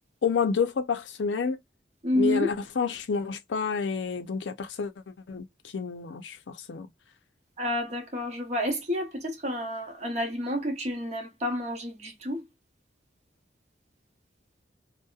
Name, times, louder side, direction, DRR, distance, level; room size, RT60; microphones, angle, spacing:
voice 1, 0.2-1.6 2.1-4.9 5.3-5.5 5.7-6.9, left 5 dB, 90° left, 0.5 m, -29 dB
voice 2, 2.0-2.5 7.6-12.4, left 1 dB, 40° right, 0.9 m, -29 dB
2.7 x 2.1 x 2.3 m
head